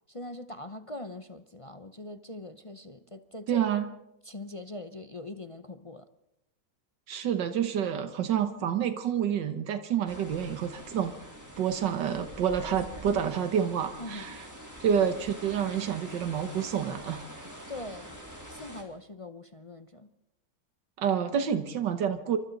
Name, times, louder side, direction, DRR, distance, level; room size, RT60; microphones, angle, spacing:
voice 1, 0.1-3.6 4.2-6.1 14.0-14.4 17.7-18.2 18.5-20.1, left 2 dB, 35° left, 0.5 m, -42 dB
voice 2, 3.5-3.9 7.1-11.1 11.6-14.4 14.8-17.3 21.0-22.4, right 8 dB, 85° right, 1.9 m, -28 dB
sound 1, 10.1-18.8, equal, 10° right, 3.7 m, -45 dB
28.5 x 25.0 x 4.0 m
omnidirectional pair, 1.9 m